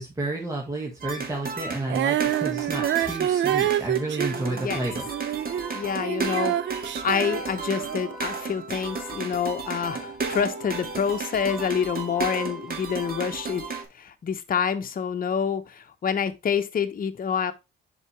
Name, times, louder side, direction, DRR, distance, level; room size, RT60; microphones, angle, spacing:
voice 1, 0.0-5.1, right 2 dB, 15° right, 1.7 m, -31 dB
sound 1, 1.0-13.9, right 4 dB, 50° right, 2.1 m, -34 dB
Female singing, 1.9-8.1, right 11 dB, 65° right, 0.6 m, -27 dB
voice 2, 4.3-4.8 5.7-6.6 6.8-13.6 13.9-17.5, left 7 dB, 45° left, 1.0 m, -27 dB
Organ, 4.9-14.0, left 2 dB, ahead, 3.0 m, -47 dB
8.1 x 4.8 x 3.3 m
cardioid pair, 90°, 20 cm